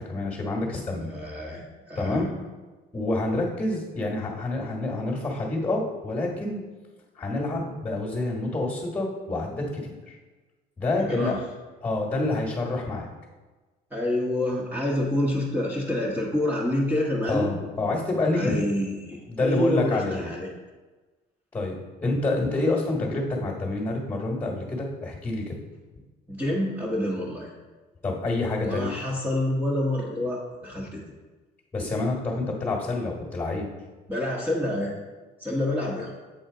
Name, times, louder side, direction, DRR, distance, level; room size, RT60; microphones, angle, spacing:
voice 1, 0.0-1.1 2.0-2.3 2.9-6.6 7.1-10.2 10.8-11.3 11.8-13.1 17.2-18.6 19.3-20.3 21.5-21.7 22.0-25.6 28.0-29.0 31.7-33.7, left 2 dB, 15° left, -1 dB, 1.4 m, -27 dB
voice 2, 1.1-2.3 11.0-11.4 13.9-17.5 18.3-20.5 26.3-27.5 28.6-31.0 34.1-34.9 35.4-36.1, left 1 dB, 10° right, -5 dB, 1.1 m, -27 dB
7.7 x 4.3 x 3.8 m, 1.3 s
cardioid pair, 110°, 17 cm